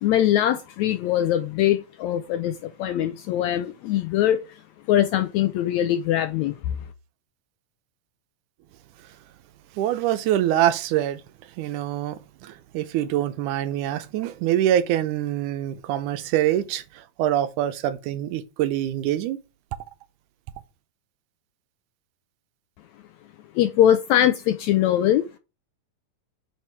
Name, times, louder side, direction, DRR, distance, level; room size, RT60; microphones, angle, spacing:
voice 1, 0.0-4.4 4.9-6.8 23.5-25.4, left 11 dB, 80° left, 1.7 m, -22 dB
voice 2, 9.8-11.2 11.6-19.4, right 12 dB, 80° right, 2.1 m, -25 dB
5.8 x 4.4 x 4.6 m
omnidirectional pair, 3.7 m